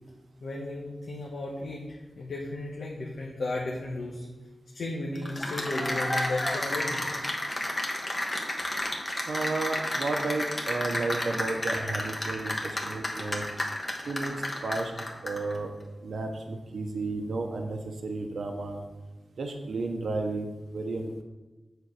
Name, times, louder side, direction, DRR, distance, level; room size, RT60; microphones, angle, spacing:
voice 1, 0.4-4.3 4.7-7.2, left 2 dB, 80° left, -3 dB, 1.3 m, -34 dB
Cheering / Applause, 5.2-15.5, left 1 dB, 25° left, 1.3 m, -31 dB
voice 2, 9.3-13.4 14.1-14.3 14.6-14.9 15.2-15.7 16.0-18.8 19.4-21.2, right 3 dB, 80° right, 4 dB, 0.9 m, -32 dB
8.2 x 4.5 x 6.7 m, 1.2 s
wide cardioid pair, 125°, 0 cm